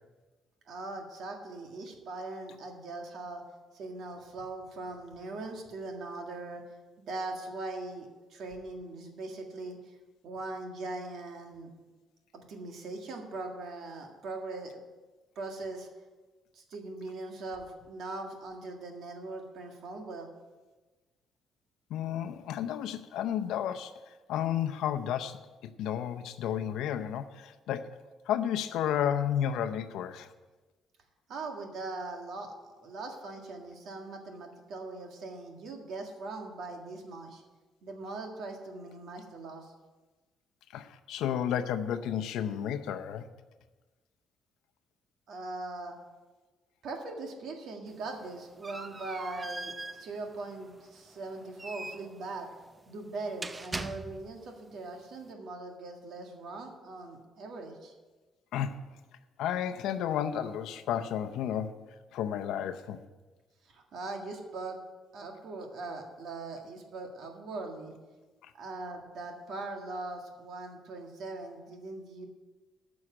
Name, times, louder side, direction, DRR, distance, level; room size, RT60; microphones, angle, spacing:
voice 1, 0.7-3.4 3.7-6.6 7.0-9.9 10.2-11.7 12.3-14.8 15.3-15.9 16.5-20.3 31.3-32.5 32.8-37.4 37.8-39.7 45.3-45.9 46.8-52.5 52.9-57.9 63.7-64.7 65.1-67.9 68.5-72.3, right 3 dB, 55° right, 3 dB, 1.8 m, -40 dB
voice 2, 21.9-28.0 28.3-30.3 40.7-43.3 58.5-58.8 59.4-61.8 62.1-63.0 68.4-68.5, left 9 dB, 80° left, 9 dB, 0.7 m, -32 dB
sound 1, 47.9-54.5, right 2 dB, 15° right, 0.4 m, -42 dB
9.5 x 6.3 x 8.6 m, 1.3 s
cardioid pair, 165°, 0 cm